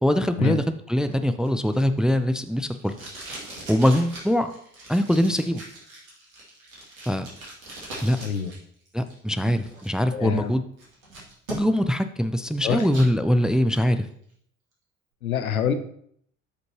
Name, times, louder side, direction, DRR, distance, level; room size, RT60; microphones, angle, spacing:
voice 1, 0.0-2.9 3.7-4.5 4.9-5.6 7.1-7.3 8.0-8.2 8.9-10.6 11.5-14.1, equal, ahead, 9 dB, 0.4 m, -22 dB
Packing tape duct tape, 1.1-8.6 8.9-9.9 10.3-10.4 10.8-11.9 12.3-13.1 13.5-13.9, right 2 dB, 80° right, 2.4 m, -41 dB
voice 2, 8.2-8.5 10.1-10.5 12.6-12.8 15.2-15.7, left 7 dB, 85° left, 10 dB, 0.7 m, -26 dB
13.0 x 5.2 x 2.9 m, 0.66 s
figure-of-eight pair, 55°, 41 cm